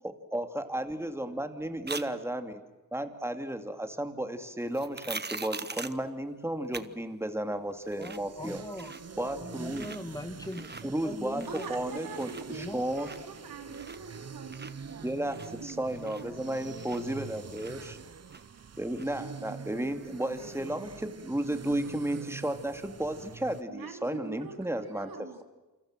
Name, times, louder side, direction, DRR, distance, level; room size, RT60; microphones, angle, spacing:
voice 1, 0.0-2.6 2.9-8.6 9.2-9.9 10.8-11.4 11.7-13.1 15.0-18.0 18.8-25.1, right 1 dB, 5° right, 7 dB, 2.5 m, -33 dB
sound 1, 1.9-2.1 4.7-6.0 6.7-6.9 7.2-7.3 7.7-8.3 8.6-9.2 9.6-10.0 10.4-10.8 11.3-11.9 12.1-14.2 14.5-17.2 17.5-18.6 19.0-19.1, right 4 dB, 30° right, 1.4 m, -42 dB
sound 2, 7.7-23.6, right 6 dB, 45° right, 1.1 m, -45 dB
voice 2, 8.0-11.6 12.5-12.8, left 1 dB, 10° left, 8 dB, 2.3 m, -41 dB
voice 3, 11.5-15.6 16.0-18.0 23.7-25.4, right 4 dB, 80° right, 5 dB, 3.7 m, -45 dB
28.5 x 25.0 x 7.6 m, 1.1 s
cardioid pair, 80°, 35 cm